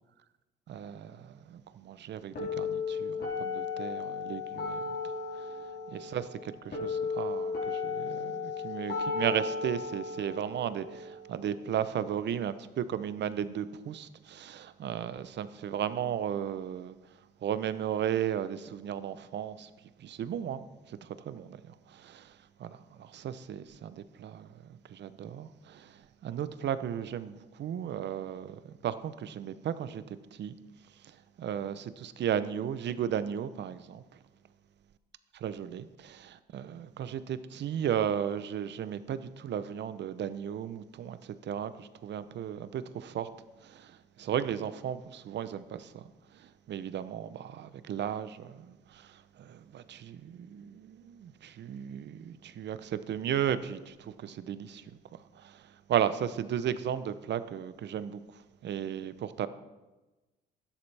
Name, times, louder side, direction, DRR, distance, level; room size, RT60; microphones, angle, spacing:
voice 1, 0.7-5.0 5.9-6.3 6.6-16.9 17.4-19.7 20.0-20.6 21.3-21.6 22.0-22.2 22.6-22.7 23.0-24.5 24.9-25.9 26.2-30.6 31.4-34.0 35.4-36.6 37.0-41.2 41.4-43.3 43.8-43.9 44.2-46.0 46.7-48.7 49.4-54.8 55.9-58.2 58.6-59.5, right 9 dB, 60° right, 0.7 m, -35 dB
sound 1, 2.4-12.4, left 5 dB, 55° left, 4.5 m, -35 dB
12.5 x 10.5 x 3.4 m
cardioid pair, 90°, 20 cm